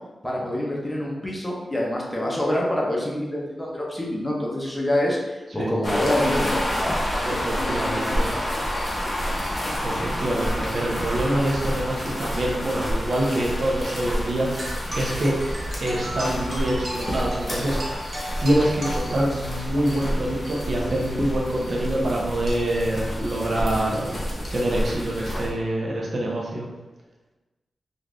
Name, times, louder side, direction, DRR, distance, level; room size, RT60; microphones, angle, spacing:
voice 1, 0.2-8.8 21.1-21.2 23.7-24.5, left 1 dB, 15° left, -3 dB, 0.6 m, -27 dB
sound 1, 5.8-25.5, equal, 40° left, 0.8 m, -29 dB
voice 2, 7.3-8.3 9.8-15.4 15.8-18.1 18.4-24.2 24.5-26.7, right 1 dB, 55° right, -2 dB, 0.6 m, -25 dB
sound 2, 14.6-19.6, equal, 35° right, 1.0 m, -35 dB
2.5 x 2.3 x 3.3 m, 1.1 s
wide cardioid pair, 120°, 0 cm